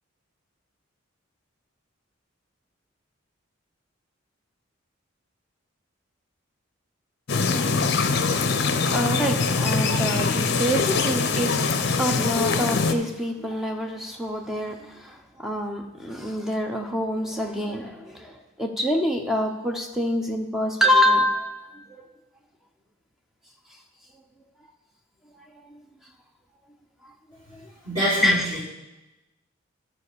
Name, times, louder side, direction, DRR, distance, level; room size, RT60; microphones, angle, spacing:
sound 1, 7.3-12.9, left 4 dB, 55° left, 0.6 m, -23 dB
voice 1, 8.9-21.7 25.7-25.8 27.5-27.7 28.2-28.6, equal, ahead, 2 dB, 0.8 m, -26 dB
voice 2, 27.8-28.6, right 1 dB, 20° right, -14 dB, 4.0 m, -25 dB
11.0 x 4.5 x 6.8 m, 1.0 s
head